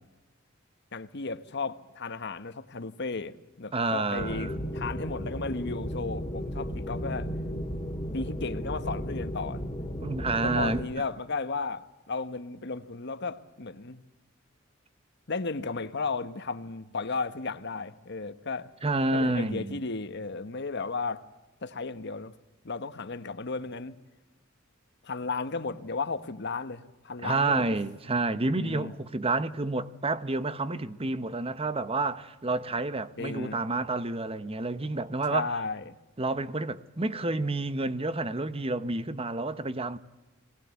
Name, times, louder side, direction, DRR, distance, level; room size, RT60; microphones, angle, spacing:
voice 1, 0.9-7.3 8.1-9.6 10.4-14.0 15.3-18.7 19.1-21.2 21.6-22.3 22.6-24.0 25.0-27.8 28.6-28.9 33.2-33.6 35.3-35.9, left 4 dB, 60° left, 1.2 m, -34 dB
voice 2, 3.7-4.6 10.0-10.8 18.8-19.8 27.2-35.5 36.2-40.0, right 2 dB, 30° right, 1.0 m, -29 dB
sound 1, 4.2-10.8, equal, 25° left, 2.2 m, -34 dB
21.5 x 18.5 x 8.3 m
head